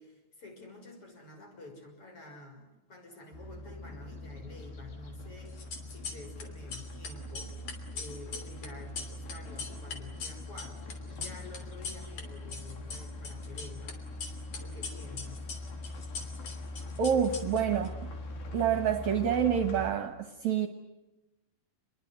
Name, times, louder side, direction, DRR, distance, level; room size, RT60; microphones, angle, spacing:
voice 1, 0.0-5.6 5.9-7.6 7.9-14.0 14.6-15.5, left 2 dB, 40° left, 7.1 m, -49 dB
sound 1, 3.3-19.9, left 2 dB, 80° left, 5.2 m, -42 dB
sound 2, 5.5-6.4 6.7-12.2 12.5-13.9 14.2-17.9, left 4 dB, 60° left, 4.4 m, -41 dB
voice 2, 17.0-17.9 18.5-20.7, right 8 dB, 60° right, 2.3 m, -27 dB
29.0 x 22.0 x 8.0 m
omnidirectional pair, 4.1 m